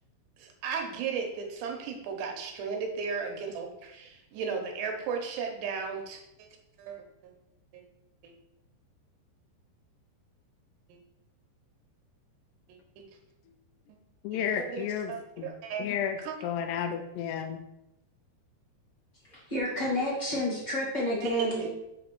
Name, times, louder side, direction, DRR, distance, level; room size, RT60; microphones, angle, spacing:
voice 1, 0.4-6.2 6.8-7.0 7.7-7.8 8.2-8.3 12.7-13.0 14.3-15.9 16.2-16.3 21.2-21.7, right 6 dB, 75° right, 2 dB, 2.9 m, -35 dB
voice 2, 14.2-15.5 15.8-17.6, left 8 dB, 80° left, 6 dB, 2.5 m, -32 dB
voice 3, 19.3-21.7, equal, 40° left, -8 dB, 0.6 m, -30 dB
7.7 x 3.5 x 5.9 m, 0.87 s
omnidirectional pair, 5.3 m